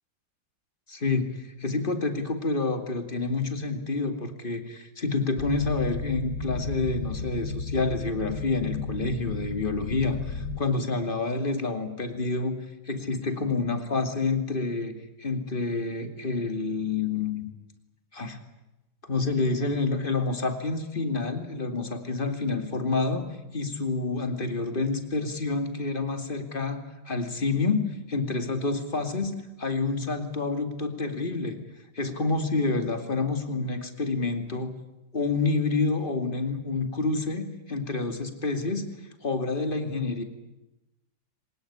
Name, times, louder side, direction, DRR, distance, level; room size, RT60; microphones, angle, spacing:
voice 1, 0.9-12.6 12.9-17.5 18.1-18.4 19.0-23.3 23.5-31.6 31.9-34.8 35.1-38.9 39.2-40.2, left 3 dB, 25° left, 7 dB, 2.6 m, -28 dB
sound 1, 5.4-10.6, left 4 dB, 65° left, 2.3 m, -33 dB
24.0 x 20.5 x 10.0 m, 0.96 s
omnidirectional pair, 2.1 m